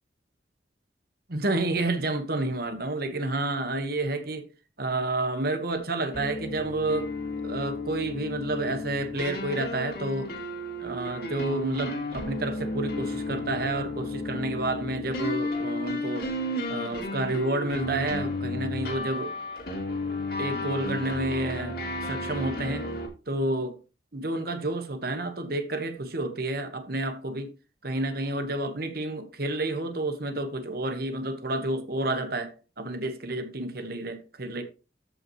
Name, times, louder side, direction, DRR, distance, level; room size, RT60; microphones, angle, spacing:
voice 1, 1.3-4.5 4.8-7.1 7.4-10.3 10.8-16.3 16.7-19.3 20.4-21.8 22.0-22.9 23.3-23.8 24.1-27.5 27.8-34.6, right 2 dB, 55° right, 1.3 m, -30 dB
sound 1, 6.1-23.1, left 1 dB, 50° left, 2.5 m, -33 dB
13.5 x 5.5 x 3.1 m
head